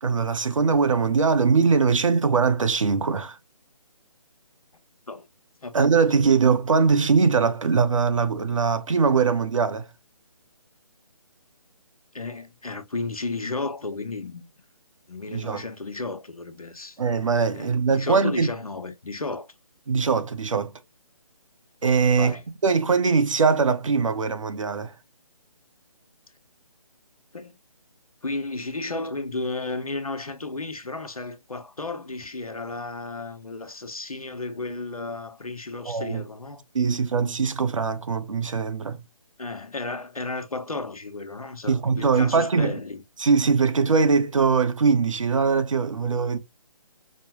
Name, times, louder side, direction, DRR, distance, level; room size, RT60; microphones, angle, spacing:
voice 1, 0.0-3.4 5.7-9.9 15.3-15.6 17.0-18.5 19.9-20.7 21.8-22.3 22.6-24.9 35.8-36.2 36.7-39.0 41.7-42.8 43.2-46.4, right 5 dB, 65° right, 0.9 m, -21 dB
voice 2, 12.1-14.5 15.1-17.0 17.5-19.5 22.2-22.4 27.3-27.6 28.2-36.6 39.4-43.0, left 3 dB, 85° left, 1.0 m, -33 dB
5.3 x 2.2 x 2.9 m
figure-of-eight pair, 145°, 18 cm